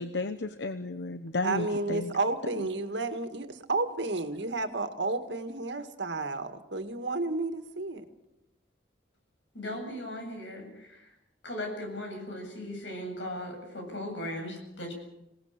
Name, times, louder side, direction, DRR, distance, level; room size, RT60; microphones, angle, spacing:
voice 1, 0.0-2.1 2.6-2.7, left 2 dB, 75° left, 11 dB, 1.0 m, -33 dB
voice 2, 1.4-8.1, right 3 dB, 80° right, 8 dB, 2.0 m, -31 dB
voice 3, 9.5-11.0 11.4-14.9, left 1 dB, 90° left, 3 dB, 7.9 m, -38 dB
26.5 x 18.5 x 6.8 m, 0.89 s
head